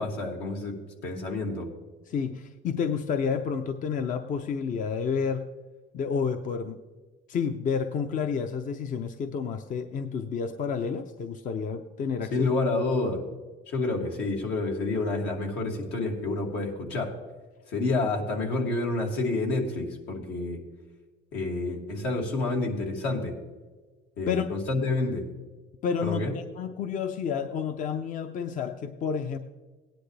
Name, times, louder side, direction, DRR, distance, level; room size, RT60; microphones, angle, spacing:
voice 1, 0.0-1.7 12.3-13.2 13.7-17.1 17.7-20.6 21.3-23.4 24.2-25.3 26.0-26.3, left 2 dB, 85° left, 0 dB, 2.5 m, -29 dB
voice 2, 2.1-5.5 5.9-6.8 7.3-12.5 24.3-24.5 25.8-29.4, left 6 dB, 50° left, 8 dB, 0.7 m, -30 dB
17.0 x 10.5 x 3.3 m, 1.3 s
cardioid pair, 110°, 17 cm